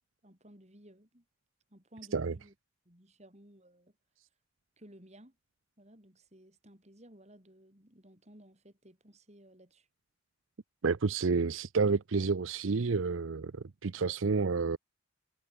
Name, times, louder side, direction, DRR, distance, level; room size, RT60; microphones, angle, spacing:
voice 1, 0.2-1.2 1.7-2.5 2.8-3.9 4.8-5.4 5.8-9.9, right 1 dB, 35° right, 6.6 m, -57 dB
voice 2, 10.8-14.8, right 4 dB, 80° right, 0.6 m, -30 dB
head